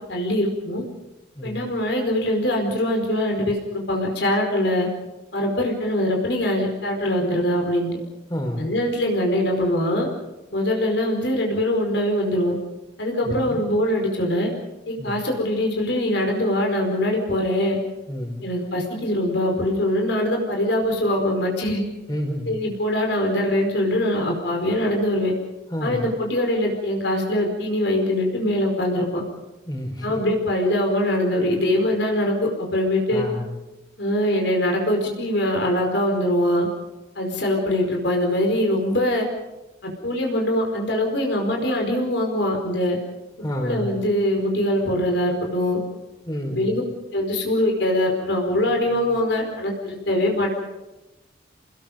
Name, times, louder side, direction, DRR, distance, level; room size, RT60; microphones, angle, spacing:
voice 1, 0.1-0.8 1.4-4.9 5.3-8.0 8.6-10.1 10.5-12.5 13.0-14.5 14.9-17.8 18.4-21.8 22.4-25.3 25.8-29.2 30.0-33.2 34.0-36.7 37.1-39.3 39.8-43.0 43.6-45.8 46.5-46.8 47.1-50.5, left 1 dB, 65° left, 1 dB, 4.9 m, -23 dB
voice 2, 8.3-8.6 13.2-13.6 15.0-15.2 18.1-18.4 22.1-22.6 25.7-26.1 29.7-30.2 33.1-33.6 43.4-44.0 46.3-46.7, equal, 20° left, 2 dB, 5.4 m, -29 dB
29.0 x 20.5 x 5.3 m, 1.0 s
head